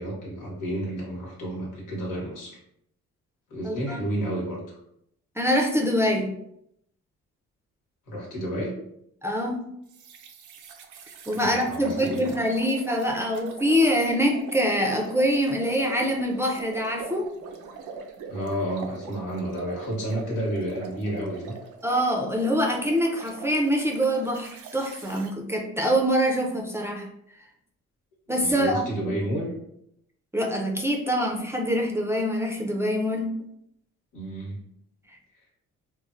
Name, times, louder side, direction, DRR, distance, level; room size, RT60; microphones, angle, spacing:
voice 1, 0.0-2.6 3.5-4.6 8.1-8.8 11.3-12.3 18.3-21.5 28.4-29.5 34.1-34.6, right 1 dB, 85° left, -3 dB, 1.1 m, -31 dB
voice 2, 3.6-4.0 5.4-6.3 9.2-9.7 11.3-17.3 21.8-27.1 28.3-29.1 30.3-33.3, equal, 10° right, 0 dB, 0.4 m, -24 dB
sound 1, 9.9-25.3, right 5 dB, 85° right, 0.5 m, -42 dB
3.0 x 2.0 x 2.5 m, 0.75 s
cardioid pair, 90°, 30 cm